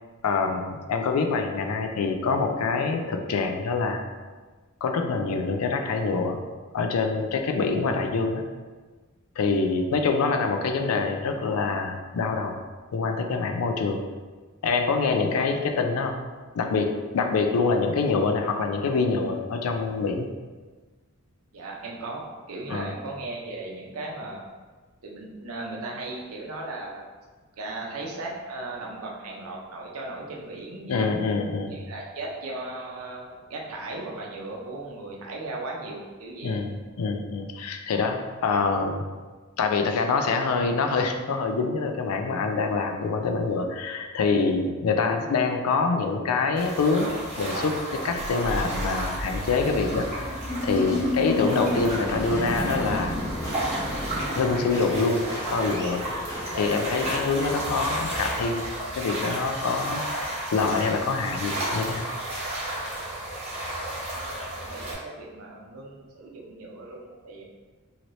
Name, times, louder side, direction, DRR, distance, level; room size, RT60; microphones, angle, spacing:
voice 1, 0.2-4.0 4.8-6.4 6.7-8.4 9.4-12.6 12.9-14.0 14.6-16.2 16.5-20.3 22.7-22.9 30.9-31.8 36.4-39.0 39.6-53.2 54.4-56.0 56.5-58.6 59.0-62.1, left 4 dB, 85° left, 5 dB, 0.4 m, -25 dB
voice 2, 21.5-24.4 25.0-27.0 27.6-31.1 31.7-36.5 64.1-67.4, right 2 dB, 80° right, -1 dB, 0.6 m, -37 dB
sound 1, 46.5-64.9, right 1 dB, 30° right, 0.9 m, -33 dB
sound 2, 48.1-59.2, left 1 dB, 15° left, 0.6 m, -33 dB
3.1 x 2.8 x 2.6 m, 1.3 s
head